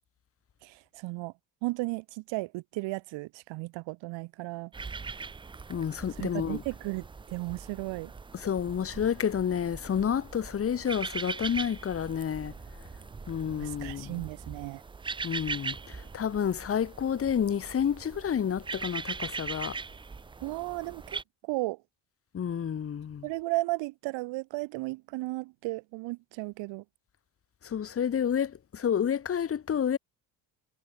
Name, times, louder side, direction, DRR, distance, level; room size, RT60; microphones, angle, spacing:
voice 1, 0.6-1.3 1.6-4.7 6.2-8.1 13.6-14.8 20.4-21.8 23.2-26.8, right 22 dB, 80° right, 0.7 m, -35 dB
sound 1, 4.7-21.2, right 4 dB, 15° right, 0.3 m, -40 dB
voice 2, 5.7-6.6 8.3-12.5 13.3-14.2 15.2-19.8 22.3-23.3 27.6-30.0, left 8 dB, 30° left, 1.0 m, -30 dB
cardioid pair, 110°, 44 cm